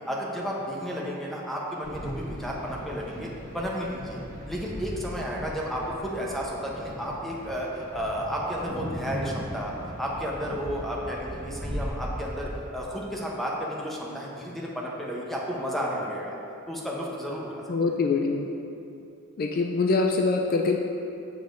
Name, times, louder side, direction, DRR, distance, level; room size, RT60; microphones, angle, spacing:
voice 1, 0.1-3.3 3.5-4.2 4.5-9.7 10.0-16.3 16.7-17.6, equal, ahead, -4 dB, 0.8 m, -32 dB
sound 1, 1.8-12.6, equal, 40° right, 1.1 m, -38 dB
voice 2, 17.7-18.5 19.4-20.8, left 4 dB, 45° left, 2 dB, 0.3 m, -24 dB
7.0 x 6.9 x 2.6 m, 2.7 s
head